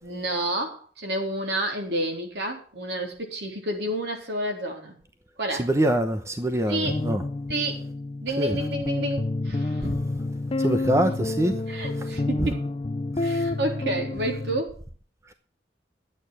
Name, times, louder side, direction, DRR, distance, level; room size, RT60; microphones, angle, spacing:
voice 1, 0.0-5.0 5.4-5.7 6.7-7.0 7.5-7.8 8.2-9.9 11.7-12.6 13.2-14.8, right 1 dB, 65° right, 3.7 m, -30 dB
voice 2, 5.5-7.2 8.4-8.6 9.8-10.0 10.6-11.6 11.9-12.1 12.4-12.5 13.2-13.5, right 1 dB, 15° right, 0.8 m, -25 dB
sound 1, 6.8-14.6, left 2 dB, 30° left, 0.5 m, -29 dB
12.0 x 8.9 x 6.2 m
head